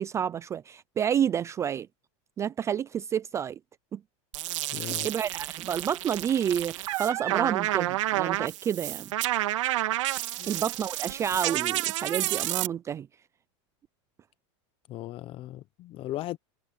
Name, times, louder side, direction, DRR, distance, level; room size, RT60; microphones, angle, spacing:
voice 1, 0.0-1.9 2.4-3.6 3.9-4.0 4.7-9.1 10.5-13.1, right 8 dB, 20° right, 0.4 m, -29 dB
sound 1, 4.3-12.7, right 16 dB, 85° right, 3.0 m, -30 dB
voice 2, 4.7-5.1 10.4-10.5 14.9-16.4, left 15 dB, 35° left, 1.0 m, -37 dB
supercardioid pair, 150°, 16 cm